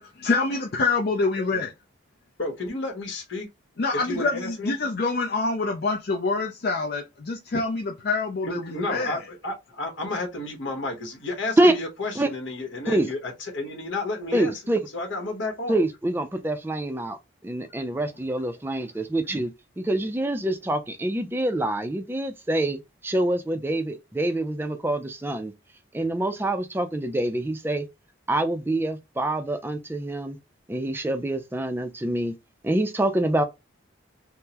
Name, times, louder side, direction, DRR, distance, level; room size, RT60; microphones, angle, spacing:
voice 1, 0.0-1.7 3.8-9.2, left 3 dB, 50° left, 0.5 m, -26 dB
voice 2, 2.4-3.5 4.0-4.7 8.4-14.5 14.9-15.8, left 2 dB, 70° left, 1.1 m, -31 dB
voice 3, 14.3-14.8 15.7-25.5 25.9-27.8 28.3-30.4 30.7-32.3 32.6-33.4, right 1 dB, 10° right, 0.4 m, -26 dB
3.6 x 2.1 x 2.9 m
head